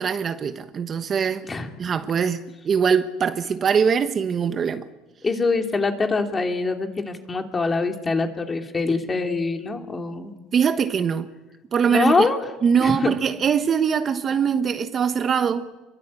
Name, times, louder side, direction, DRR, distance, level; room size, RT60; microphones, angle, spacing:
voice 1, 0.0-1.4 1.8-4.8 10.5-11.3 11.7-12.3 12.6-15.7, right 7 dB, 30° right, 1.2 m, -22 dB
voice 2, 5.2-10.4 11.9-12.4 12.8-13.2, left 3 dB, 20° left, 2.9 m, -24 dB
29.0 x 23.0 x 8.4 m
cardioid pair, 130°, 0 cm